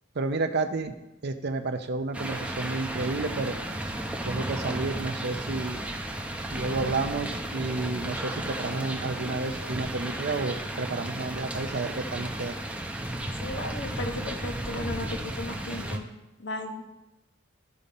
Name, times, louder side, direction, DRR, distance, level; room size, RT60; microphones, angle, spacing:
voice 1, 0.2-0.9 1.2-3.6 4.3-5.8 6.5-12.5, right 3 dB, 55° right, 7 dB, 0.7 m, -31 dB
sound 1, 2.1-16.0, right 1 dB, 5° right, 0.7 m, -34 dB
voice 2, 13.4-16.0 16.4-16.8, left 2 dB, 60° left, 4 dB, 1.1 m, -35 dB
13.5 x 5.3 x 4.2 m, 0.98 s
head